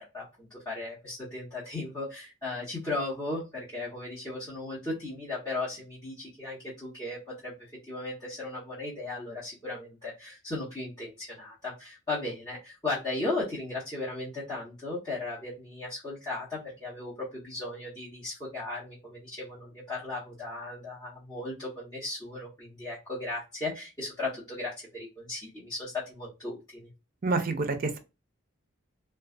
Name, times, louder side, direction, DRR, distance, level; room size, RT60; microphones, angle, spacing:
voice 1, 0.0-7.5 7.9-26.9, left 2 dB, 20° left, -9 dB, 1.0 m, -36 dB
voice 2, 27.2-28.0, right 3 dB, 45° right, 7 dB, 0.4 m, -28 dB
2.4 x 2.2 x 2.4 m, 0.28 s
head